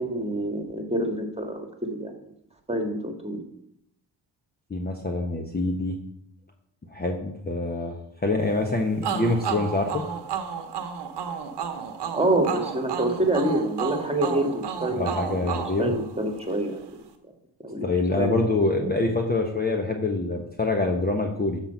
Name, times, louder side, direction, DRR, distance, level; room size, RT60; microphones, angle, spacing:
voice 1, 0.0-2.1 2.7-3.4 12.1-15.4 15.8-16.8 17.6-17.8 18.2-18.4 18.8-18.9, right 1 dB, 15° right, 3 dB, 1.8 m, -26 dB
voice 2, 4.7-6.0 6.9-10.0 14.9-16.0 17.8-21.6, left 2 dB, 20° left, 3 dB, 1.0 m, -25 dB
sound 1, 9.0-16.6, right 7 dB, 65° right, 1.1 m, -32 dB
7.3 x 4.4 x 5.6 m, 0.75 s
supercardioid pair, 55°, 44 cm